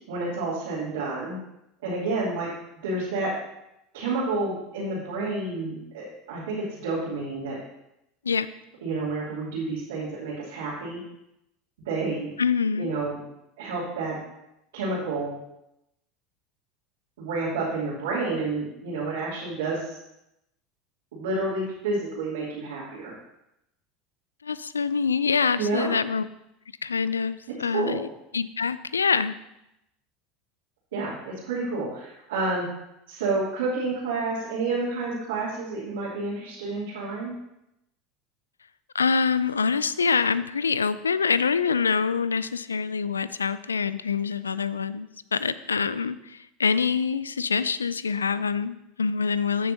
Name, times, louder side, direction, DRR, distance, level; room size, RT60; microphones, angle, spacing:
voice 1, 0.1-1.4 1.8-2.5 2.8-3.3 3.9-7.6 8.8-11.0 11.8-12.3 12.7-13.2 13.6-14.2 14.7-15.3 17.2-20.0 21.1-23.1 25.5-25.9 27.7-28.0 30.9-32.7 33.1-37.3, right 3 dB, 70° right, -9 dB, 2.8 m, -29 dB
voice 2, 12.4-12.9 24.4-26.2 26.8-28.1 28.3-29.4 38.9-49.7, left 5 dB, 85° left, 17 dB, 0.3 m, -25 dB
14.5 x 6.4 x 2.8 m, 0.85 s
figure-of-eight pair, 75°, 0 cm